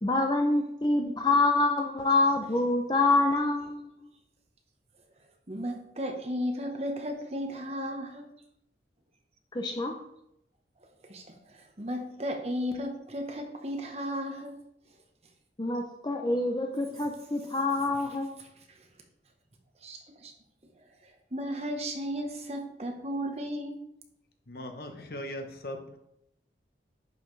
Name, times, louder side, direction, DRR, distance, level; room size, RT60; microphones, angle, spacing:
voice 1, 0.0-3.9 9.5-9.9 15.6-18.3, left 2 dB, 25° left, 0.6 m, -26 dB
voice 2, 5.5-8.3 11.1-11.2 11.8-14.6 19.8-20.3 21.3-23.8, equal, 35° right, 1.1 m, -34 dB
voice 3, 24.5-26.0, left 1 dB, 55° left, 1.0 m, -39 dB
10.5 x 5.5 x 3.2 m
head